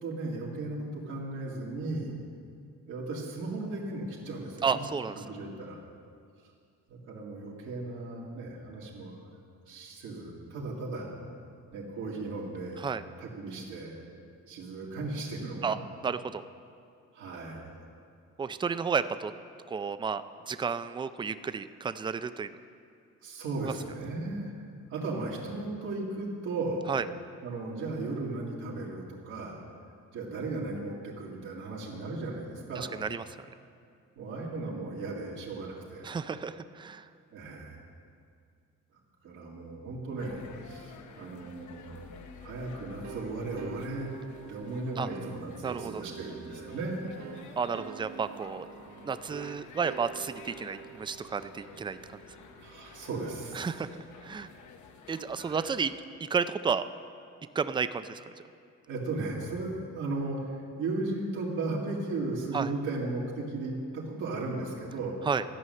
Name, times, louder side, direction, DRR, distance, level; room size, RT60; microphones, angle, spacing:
voice 1, 0.0-2.1 2.9-4.8 5.1-5.8 6.9-9.2 9.7-11.1 11.7-12.9 13.2-14.0 14.5-15.8 17.1-17.6 23.2-24.5 24.9-26.9 27.4-29.6 30.1-33.0 34.2-36.1 37.3-37.7 39.2-42.1 42.4-44.1 44.5-47.0 52.6-53.7 55.3-55.7 58.9-65.2, right 2 dB, 85° right, -5 dB, 2.2 m, -36 dB
voice 2, 4.6-5.2 12.8-13.0 15.6-15.8 16.0-16.4 18.4-19.3 19.7-22.5 23.6-23.7 26.9-27.0 32.8-33.2 36.0-37.1 45.0-45.1 45.6-46.0 47.6-48.7 49.0-52.0 53.5-54.5 55.1-55.9 56.2-56.8 57.5-58.4 62.5-62.7 65.2-65.4, right 6 dB, 15° right, 12 dB, 0.4 m, -32 dB
sound 1, 40.2-55.9, left 5 dB, 75° left, 0.9 m, -51 dB
sound 2, 43.0-53.5, right 10 dB, 65° right, 0.7 m, -47 dB
13.0 x 5.4 x 7.6 m, 2.4 s
cardioid pair, 90°, 30 cm